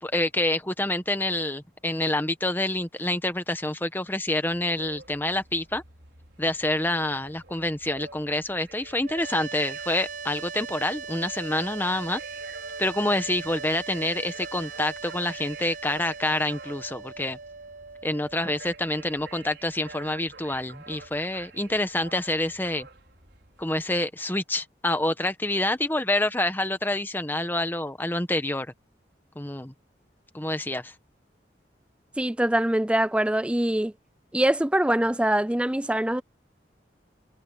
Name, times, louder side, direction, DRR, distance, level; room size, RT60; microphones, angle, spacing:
voice 1, 0.0-5.8 6.4-12.2 12.8-17.4 18.0-22.9 23.6-28.7 29.3-29.7 30.3-30.9, left 1 dB, 10° left, 1.2 m, -27 dB
ricos-tamales, 4.5-23.9, right 3 dB, 70° right, 5.2 m, -48 dB
sound 1, 9.0-20.1, right 5 dB, 45° right, 0.9 m, -40 dB
voice 2, 32.2-33.9 34.3-36.2, right 1 dB, 5° right, 0.4 m, -23 dB
head